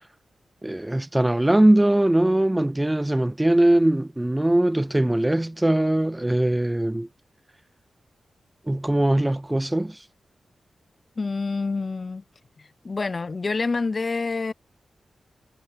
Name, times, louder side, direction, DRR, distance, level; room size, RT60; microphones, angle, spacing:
voice 1, 0.6-7.1 8.7-10.0, right 1 dB, 15° right, 0.3 m, -21 dB
voice 2, 11.2-12.2 12.8-14.5, left 3 dB, 45° left, 0.5 m, -27 dB
cardioid pair, 45°, 0 cm